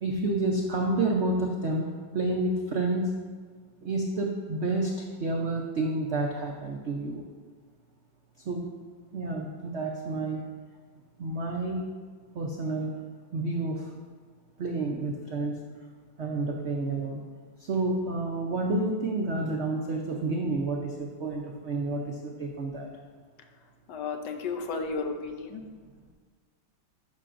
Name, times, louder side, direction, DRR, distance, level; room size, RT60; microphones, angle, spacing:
voice 1, 0.0-3.1 3.8-7.2 8.5-8.7 9.1-10.4 11.2-11.9 12.3-12.9 13.3-13.9 14.6-15.6 16.2-17.2 17.7-22.9, right 2 dB, 85° right, 0 dB, 0.6 m, -29 dB
voice 2, 23.9-25.6, left 4 dB, 70° left, 5 dB, 1.2 m, -33 dB
11.5 x 5.7 x 2.5 m, 1.5 s
omnidirectional pair, 2.0 m